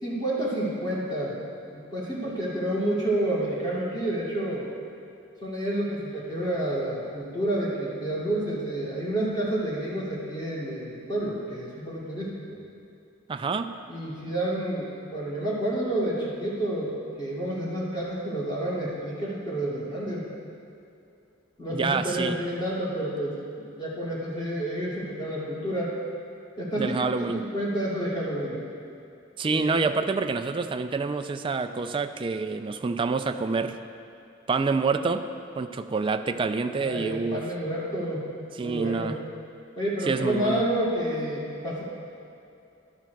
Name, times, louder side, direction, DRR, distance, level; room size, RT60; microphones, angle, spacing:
voice 1, 0.0-4.7 5.4-12.6 13.9-20.3 21.6-25.9 26.6-28.6 29.5-29.8 36.8-38.2 38.6-39.2 39.8-41.8, right 1 dB, 25° left, -8 dB, 2.5 m, -29 dB
voice 2, 13.3-13.7 21.7-22.4 26.8-27.4 29.4-33.8 34.5-35.3 35.5-37.4 38.6-39.1 40.1-40.6, right 4 dB, 25° right, 8 dB, 0.3 m, -27 dB
13.5 x 11.5 x 2.4 m, 2.7 s
head